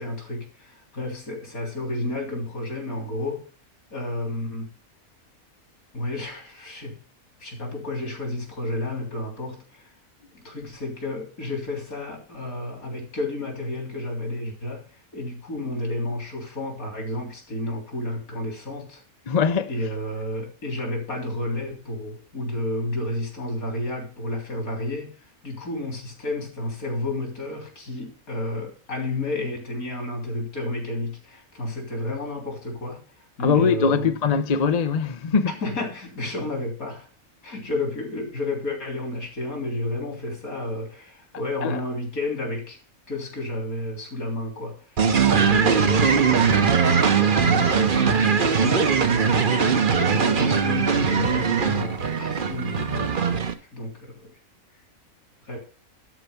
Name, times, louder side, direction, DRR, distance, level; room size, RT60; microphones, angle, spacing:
voice 1, 0.0-3.5 3.9-4.7 5.9-7.0 7.4-9.9 10.3-14.9 15.1-19.0 19.7-25.2 25.4-33.0 33.4-34.1 35.6-37.1 37.4-42.8 43.1-45.0 45.4-46.7 47.4-54.3 55.4-55.6, left 1 dB, 75° left, 4.1 m, -31 dB
voice 2, 19.3-19.7 33.4-35.5 41.6-41.8, left 6 dB, 40° left, 0.6 m, -22 dB
sound 1, 45.0-53.5, right 6 dB, 40° right, 1.0 m, -20 dB
12.5 x 4.7 x 6.9 m
omnidirectional pair, 1.5 m